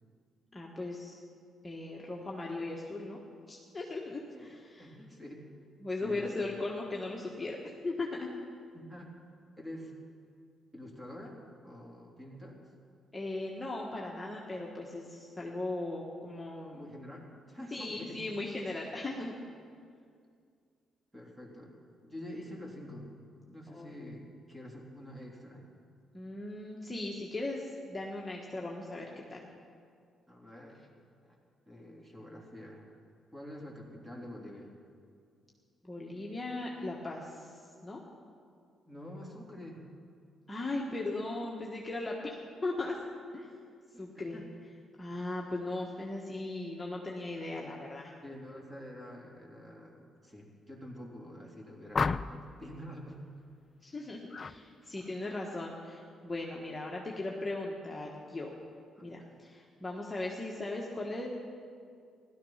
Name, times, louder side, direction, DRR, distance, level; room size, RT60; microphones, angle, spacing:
voice 1, 0.5-1.2 1.6-3.2 3.5-4.9 5.8-7.6 7.8-8.3 13.1-16.8 17.7-19.3 23.7-23.9 26.1-29.5 35.8-38.0 40.5-43.0 43.3-43.5 44.0-44.4 45.0-48.1 53.8-58.5 59.0-61.3, left 2 dB, 20° left, -2 dB, 1.6 m, -38 dB
voice 2, 4.8-5.5 6.0-6.4 8.7-9.1 9.6-9.9 10.7-11.4 11.6-12.6 16.7-18.2 21.1-23.1 23.5-25.7 30.3-30.9 31.2-31.4 31.7-32.9 33.3-34.7 38.8-39.8 43.9-44.5 48.2-53.2 54.8-54.9 58.9-59.3, equal, 10° right, -2 dB, 3.5 m, -47 dB
sound 1, 51.9-52.6 54.3-54.6 55.0-55.3, left 4 dB, 35° left, 0.4 m, -32 dB
16.5 x 12.5 x 5.8 m, 2.3 s
cardioid pair, 90°, 0 cm